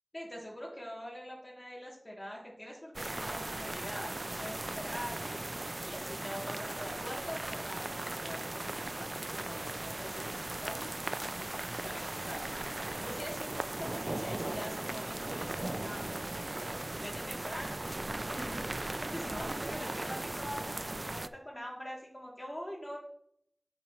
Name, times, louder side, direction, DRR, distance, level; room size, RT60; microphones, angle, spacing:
voice 1, 0.1-11.0 11.8-12.4 13.0-16.2 16.6-17.8 18.1-23.0, equal, 25° left, -3 dB, 2.5 m, -44 dB
sound 1, 2.9-21.3, right 2 dB, 45° right, 0.3 m, -38 dB
8.2 x 5.8 x 3.0 m, 0.68 s
wide cardioid pair, 55°, 0 cm